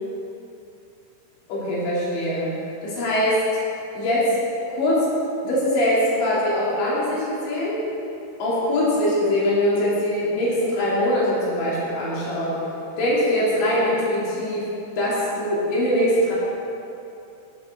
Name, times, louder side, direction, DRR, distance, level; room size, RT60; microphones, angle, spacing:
voice 1, 1.5-2.5 2.8-3.4 3.9-4.4 4.7-5.1 5.4-7.8 8.4-12.6 13.0-14.7 15.0-16.3, left 1 dB, 75° left, -8 dB, 5.6 m, -22 dB
18.5 x 12.0 x 3.9 m, 2.7 s
omnidirectional pair, 5.1 m